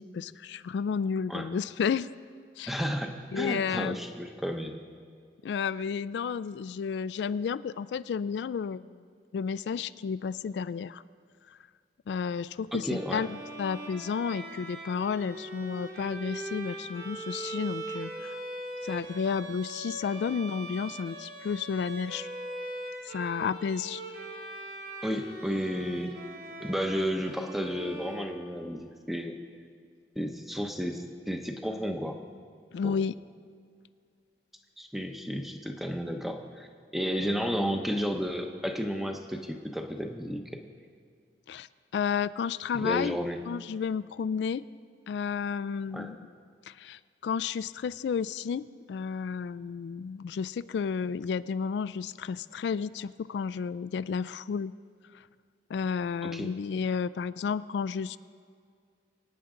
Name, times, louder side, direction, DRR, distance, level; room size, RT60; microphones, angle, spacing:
voice 1, 0.0-2.1 2.6-2.8 3.3-4.0 5.4-8.9 9.3-11.0 12.1-18.4 18.8-22.3 23.0-24.0 32.7-33.2 41.5-41.7 41.9-43.2 43.5-44.6 45.1-46.2 46.7-54.7 55.7-58.2, left 6 dB, 80° left, 16 dB, 0.3 m, -32 dB
voice 2, 2.7-4.7 12.7-13.2 25.0-26.1 26.6-29.4 30.2-32.2 32.8-33.0 34.8-36.7 36.9-40.4 42.8-43.4 45.9-46.1 56.2-56.5, equal, ahead, 4 dB, 0.8 m, -32 dB
Bowed string instrument, 12.8-28.9, right 2 dB, 60° right, 2.1 m, -41 dB
24.0 x 9.3 x 3.8 m, 2.2 s
head